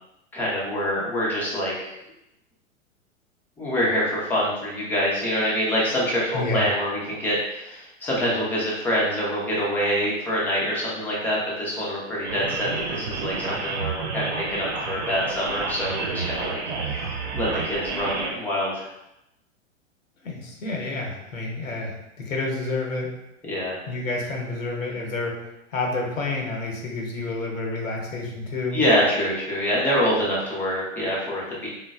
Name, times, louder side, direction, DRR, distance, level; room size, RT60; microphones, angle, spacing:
voice 1, 0.3-1.9 3.6-16.6 16.9-17.0 17.4-18.9 23.5-23.8 28.7-31.7, equal, 5° left, -6 dB, 0.3 m, -25 dB
sound 1, 12.2-18.3, right 4 dB, 55° right, 0.7 m, -30 dB
voice 2, 20.2-23.1 23.9-25.4 25.7-28.8, left 2 dB, 80° left, 0 dB, 0.8 m, -29 dB
3.6 x 2.1 x 2.3 m, 0.87 s
figure-of-eight pair, 100°, 40 cm